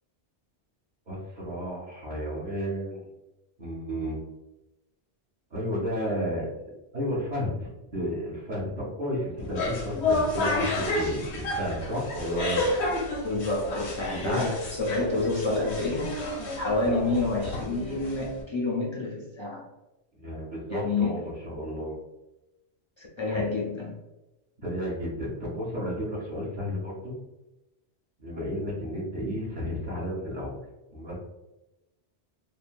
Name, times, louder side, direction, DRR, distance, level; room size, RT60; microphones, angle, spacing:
voice 1, 1.1-3.1 3.6-4.2 5.5-6.5 6.9-12.9 14.0-14.4 20.1-21.9 23.3-23.4 24.6-27.1 28.2-30.6 30.9-31.2, equal, 50° right, -8 dB, 0.9 m, -32 dB
sound 1, 9.4-18.4, left 2 dB, 80° left, 0.9 m, -31 dB
voice 2, 13.2-16.2 16.6-19.6 20.7-21.2 23.0-23.9, left 2 dB, 45° left, -4 dB, 0.3 m, -28 dB
3.2 x 2.1 x 2.4 m, 0.97 s
omnidirectional pair, 1.1 m